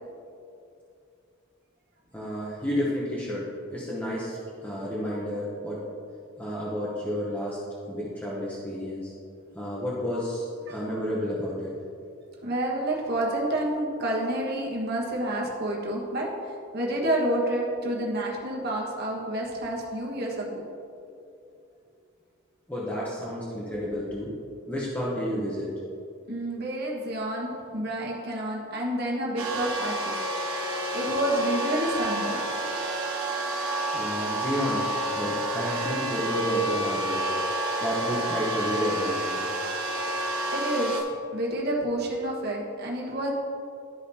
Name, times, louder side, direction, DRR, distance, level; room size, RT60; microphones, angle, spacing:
voice 1, 2.1-5.8 6.4-7.6 7.9-9.1 9.5-11.7 22.7-24.4 24.7-25.7 33.9-34.9 35.1-37.2 37.8-39.4, equal, 10° left, -7 dB, 0.9 m, -31 dB
voice 2, 12.4-16.3 16.7-20.7 26.3-30.2 30.9-32.4 40.5-40.9 41.3-43.3, right 1 dB, 50° right, -2 dB, 1.3 m, -29 dB
sound 1, 29.4-41.0, right 1 dB, 80° right, 1.1 m, -29 dB
12.5 x 5.1 x 2.8 m, 2.5 s
head